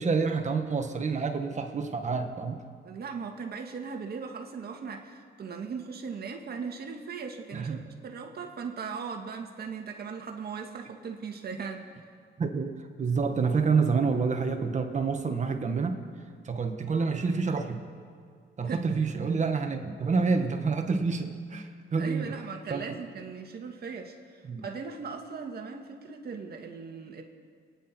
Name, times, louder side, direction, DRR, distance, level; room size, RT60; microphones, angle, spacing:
voice 1, 0.0-2.6 7.5-7.8 12.4-16.0 16.4-17.8 18.6-22.4 22.7-23.0 24.4-24.6, right 4 dB, 35° right, 5 dB, 1.7 m, -28 dB
voice 2, 2.8-12.0 18.7-18.8 22.0-27.2, right 5 dB, 55° right, 3 dB, 1.9 m, -38 dB
27.0 x 10.0 x 4.5 m, 2.1 s
cardioid pair, 90°, 20 cm